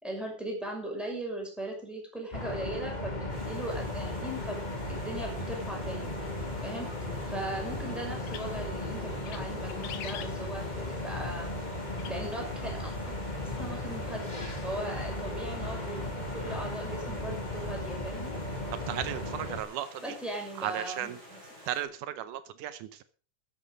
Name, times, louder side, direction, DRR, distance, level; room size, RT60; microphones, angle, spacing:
voice 1, 0.0-4.6 4.9-6.1 6.6-6.9 7.2-11.5 12.0-13.1 13.4-18.3 20.0-21.4, right 1 dB, ahead, -1 dB, 5.8 m, -38 dB
sound 1, 2.3-19.6, left 1 dB, 15° left, 1.8 m, -36 dB
Stream, 3.3-21.8, equal, 35° right, 5.8 m, -50 dB
sound 2, 8.3-8.7 9.1-9.4 9.7-10.8 12.0-12.1, left 11 dB, 70° left, 2.3 m, -43 dB
voice 2, 18.7-20.0 20.6-21.2 21.7-23.0, right 11 dB, 80° right, 13 dB, 2.3 m, -35 dB
13.5 x 10.0 x 5.2 m, 0.39 s
omnidirectional pair, 3.6 m